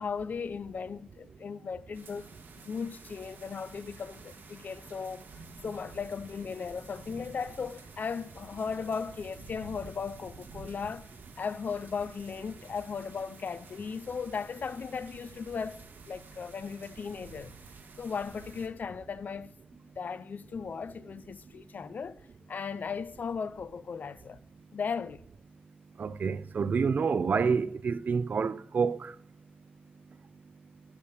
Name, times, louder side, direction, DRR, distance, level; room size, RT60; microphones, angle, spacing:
voice 1, 0.0-2.3 2.6-5.3 5.6-11.1 11.4-15.8 16.1-17.5 18.0-19.6 20.0-24.4 24.7-25.2, left 5 dB, 55° left, 0.4 m, -37 dB
sound 1, 1.9-18.7, right 3 dB, 90° right, 1.5 m, -51 dB
voice 2, 26.0-29.1, right 5 dB, 60° right, 0.4 m, -28 dB
8.3 x 6.4 x 6.5 m
cardioid pair, 80°, 3 cm